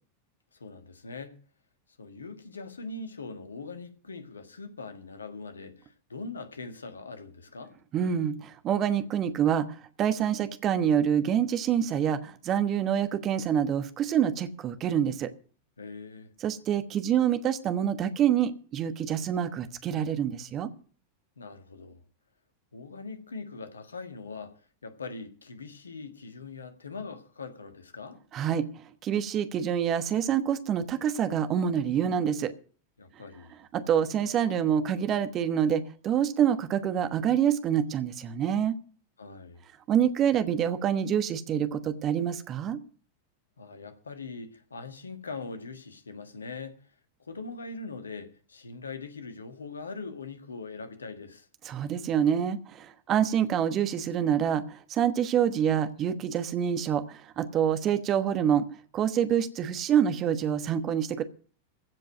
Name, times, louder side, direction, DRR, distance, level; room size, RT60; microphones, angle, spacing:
voice 1, 0.5-1.4 2.0-7.7 15.8-16.3 21.4-22.0 22.7-28.2 33.0-33.6 39.2-39.6 43.6-46.9 47.3-51.5, left 4 dB, 75° left, 1.6 m, -41 dB
voice 2, 7.9-15.3 16.4-20.7 28.3-32.5 33.7-38.8 39.9-42.8 51.6-58.7 58.9-61.2, right 9 dB, 30° right, 1.2 m, -26 dB
15.5 x 5.3 x 9.0 m
figure-of-eight pair, 90°, 0 cm